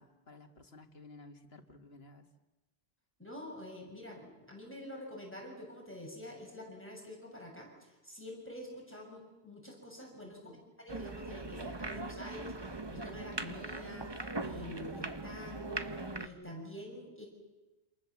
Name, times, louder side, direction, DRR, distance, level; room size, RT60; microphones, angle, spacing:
voice 1, 0.0-2.3 10.2-10.6, left 2 dB, 75° left, 6 dB, 2.4 m, -55 dB
voice 2, 3.2-10.5 10.8-17.3, left 1 dB, 10° left, 0 dB, 6.8 m, -47 dB
sound 1, 10.9-16.3, right 2 dB, 25° right, 1.2 m, -40 dB
28.0 x 27.5 x 7.4 m, 1.1 s
omnidirectional pair, 1.1 m